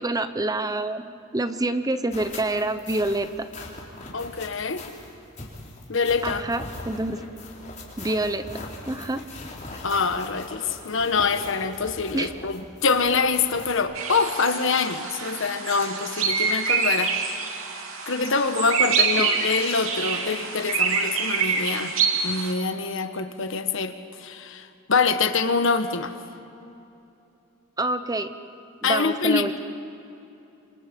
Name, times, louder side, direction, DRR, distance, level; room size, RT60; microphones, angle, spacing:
voice 1, 0.0-3.5 6.2-7.2 8.0-8.5 8.9-9.2 12.1-12.3 19.2-19.4 27.8-28.3 28.8-29.6, right 2 dB, 20° right, 10 dB, 0.9 m, -27 dB
sound 1, 2.1-13.8, left 2 dB, 40° left, 4.1 m, -41 dB
voice 2, 4.1-4.9 5.9-6.4 9.8-17.1 18.1-21.9 22.2-23.9 24.2-26.1 28.8-29.6, left 4 dB, 65° left, 9 dB, 1.3 m, -25 dB
sound 2, 14.0-22.5, right 5 dB, 80° right, 2.6 m, -26 dB
27.5 x 25.5 x 5.3 m, 2.8 s
head